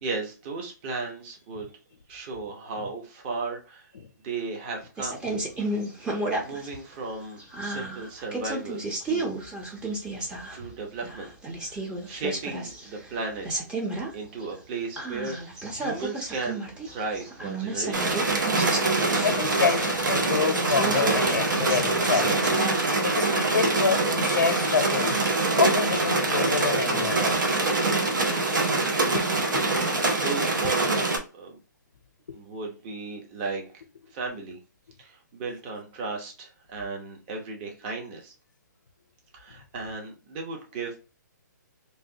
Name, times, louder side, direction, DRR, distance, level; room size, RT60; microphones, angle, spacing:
voice 1, 0.0-1.7 2.1-3.9 4.2-5.2 6.4-9.4 10.5-11.3 11.6-13.6 14.1-18.3 29.0-29.6 30.2-31.6 32.3-33.6 34.1-34.6 35.0-38.3 39.3-41.0, right 3 dB, 30° right, 0.9 m, -35 dB
sound 1, 5.0-6.8 7.1-10.7 11.0-13.2 13.4-14.1 14.4-14.5 15.0-20.0 20.5-22.9, right 2 dB, 10° right, 0.6 m, -32 dB
sound 2, 17.9-31.2, right 3 dB, 75° right, 1.0 m, -24 dB
voice 2, 18.9-27.6 29.1-29.2 29.5-29.7 32.3-32.4, left 6 dB, 70° left, 0.6 m, -28 dB
3.3 x 2.6 x 2.8 m
hypercardioid pair, 150°, 10 cm